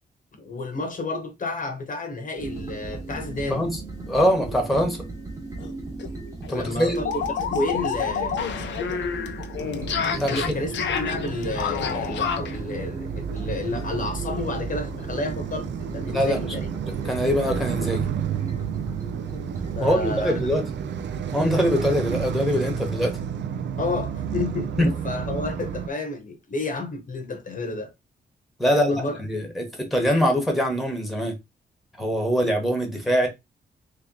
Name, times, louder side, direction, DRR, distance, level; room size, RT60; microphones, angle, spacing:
voice 1, 0.4-3.6 6.5-9.0 10.3-15.7 15.9-16.7 19.7-20.5 23.8-27.9 28.6-29.2, left 2 dB, 50° left, 0.9 m, -31 dB
sound 1, 2.4-21.2, right 3 dB, 20° right, 1.1 m, -37 dB
voice 2, 4.1-5.1 6.5-7.0 10.0-10.5 13.7-13.8 16.1-16.6 16.8-18.1 19.8-20.6 21.3-23.2 24.8-24.9 28.6-31.3 32.0-33.3, equal, ahead, 1.0 m, -23 dB
sound 2, 5.6-5.7 6.0-6.1 6.4-12.6, left 7 dB, 90° left, 0.5 m, -29 dB
sound 3, 9.6-25.9, right 8 dB, 85° right, 0.5 m, -31 dB
3.2 x 2.9 x 3.7 m
wide cardioid pair, 150°, 18 cm